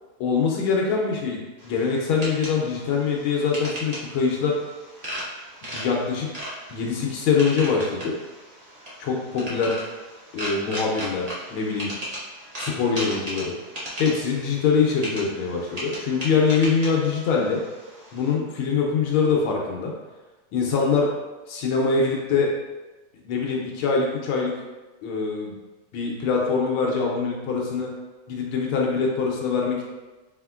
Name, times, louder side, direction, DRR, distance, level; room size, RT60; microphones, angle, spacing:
voice 1, 0.2-4.6 5.7-6.3 6.7-8.1 9.0-9.8 10.3-11.9 12.6-13.6 14.0-17.6 18.1-19.9 20.5-21.1 21.5-22.5 23.2-24.5 25.0-25.5 25.9-27.9 28.3-29.8, left 5 dB, 75° left, -1 dB, 1.5 m, -23 dB
sound 1, 1.6-18.3, equal, 55° right, 0.4 m, -37 dB
4.2 x 4.2 x 2.3 m, 1.2 s
omnidirectional pair, 2.4 m